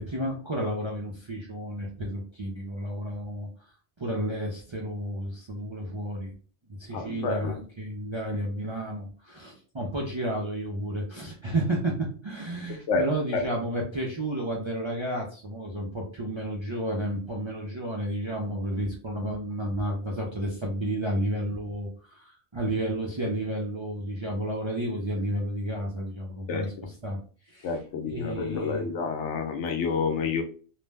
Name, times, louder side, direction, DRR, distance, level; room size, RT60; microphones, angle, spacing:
voice 1, 0.0-3.5 4.0-6.3 6.7-27.7 28.0-28.9, right 1 dB, 45° right, -2 dB, 0.4 m, -32 dB
voice 2, 6.9-7.6 12.7-13.0 13.3-13.5 26.5-26.7 27.6-30.4, left 4 dB, 90° left, 5 dB, 0.9 m, -29 dB
2.5 x 2.0 x 3.3 m, 0.39 s
omnidirectional pair, 1.2 m